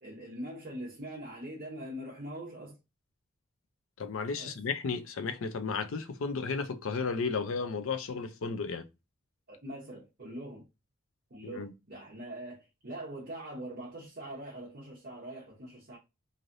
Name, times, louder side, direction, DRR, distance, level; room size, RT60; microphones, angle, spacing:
voice 1, 0.0-2.8 4.4-4.6 9.5-10.7 11.3-16.0, right 1 dB, 45° right, 0.8 m, -42 dB
voice 2, 4.0-8.9 11.4-11.7, left 4 dB, 75° left, 0.5 m, -33 dB
3.2 x 2.5 x 2.6 m
head